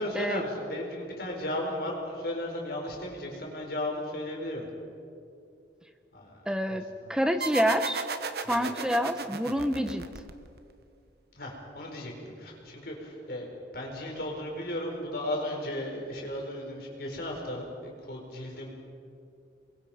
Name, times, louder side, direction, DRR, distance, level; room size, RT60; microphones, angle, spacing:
voice 1, 0.0-4.6 6.1-6.4 6.7-6.8 11.3-12.1 12.4-13.5 13.7-18.7, left 1 dB, 55° left, 0 dB, 4.9 m, -35 dB
voice 2, 6.5-6.8 7.1-8.1 8.5-10.0, equal, 5° right, 7 dB, 1.1 m, -27 dB
sound 1, 7.4-10.7, right 4 dB, 55° right, 1.2 m, -35 dB
28.5 x 22.5 x 5.1 m, 2.5 s
head